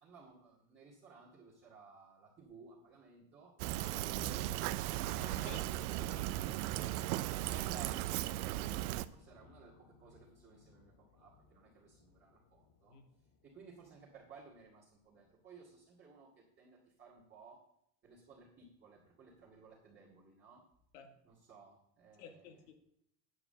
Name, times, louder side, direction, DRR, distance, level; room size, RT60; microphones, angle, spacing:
voice 1, 0.0-4.5 6.6-8.8 9.1-13.0 13.4-17.6 18.0-20.6 21.2-22.6, right 4 dB, 20° right, -7 dB, 2.2 m, -58 dB
Fill (with liquid), 3.6-9.1, right 15 dB, 75° right, 0.6 m, -37 dB
sound 1, 4.2-14.1 14.4-14.6, left 5 dB, 40° left, 1.0 m, -59 dB
voice 2, 5.1-5.7 6.0-6.3 12.9-13.0 20.9-21.1 22.2-22.7, left 6 dB, 90° left, 5 dB, 2.1 m, -53 dB
9.6 x 4.9 x 7.9 m, 0.72 s
cardioid pair, 170°, 46 cm